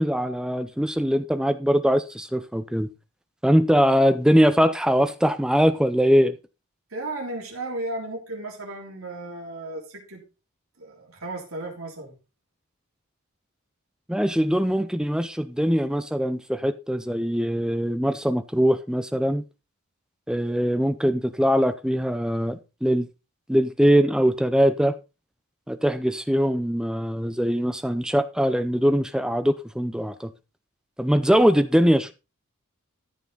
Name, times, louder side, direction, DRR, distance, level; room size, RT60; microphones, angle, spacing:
voice 1, 0.0-2.9 3.4-6.3 14.1-19.4 20.3-23.1 23.5-25.0 25.7-30.3 31.0-32.1, equal, 5° right, 0.5 m, -22 dB
voice 2, 6.9-10.2 10.8-12.2 31.3-31.5, right 2 dB, 85° right, 3.5 m, -35 dB
14.0 x 6.0 x 3.9 m
head